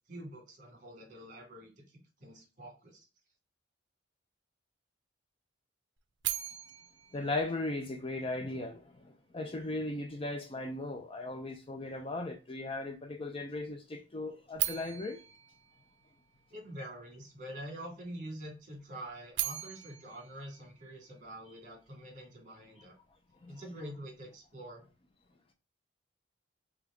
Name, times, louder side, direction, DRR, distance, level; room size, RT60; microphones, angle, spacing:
voice 1, 0.1-3.1 16.5-23.0 23.5-24.9, right 1 dB, 40° right, 1.9 m, -46 dB
sound 1, 6.2-8.4 14.5-16.7 19.1-21.5, right 13 dB, 65° right, 0.5 m, -39 dB
voice 2, 7.1-15.2 23.4-23.5, left 2 dB, 30° left, 0.5 m, -37 dB
3.6 x 3.5 x 3.6 m
head